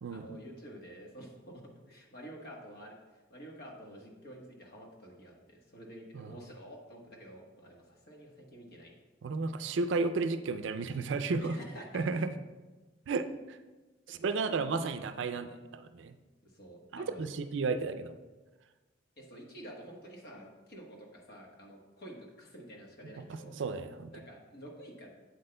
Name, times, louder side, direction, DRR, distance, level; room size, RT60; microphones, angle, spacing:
voice 1, 0.1-3.0 3.3-8.9 11.4-12.1 14.1-14.2 16.4-17.4 19.2-23.6 24.1-25.1, equal, 55° left, 0 dB, 1.3 m, -49 dB
voice 2, 9.2-11.5 11.9-12.3 13.1-13.6 14.1-16.1 16.9-18.1 23.2-24.1, right 4 dB, 65° right, 10 dB, 0.4 m, -33 dB
8.2 x 7.8 x 2.2 m, 1.2 s
head